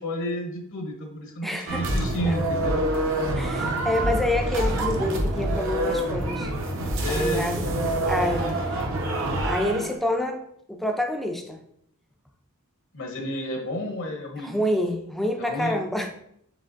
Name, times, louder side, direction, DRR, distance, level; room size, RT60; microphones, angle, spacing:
voice 1, 0.0-2.8 7.0-7.8 8.4-8.6 12.9-14.5 15.4-15.8, equal, 55° left, 2 dB, 0.7 m, -31 dB
voice 2, 1.4-1.9 2.3-2.4 3.3-6.5 7.1-7.7 8.1-8.8 9.4-10.4 10.7-11.6 14.4-16.1, left 1 dB, ahead, 4 dB, 0.4 m, -27 dB
sound 1, 1.7-10.0, right 1 dB, 60° right, 0.8 m, -26 dB
4.9 x 3.8 x 2.5 m, 0.71 s
head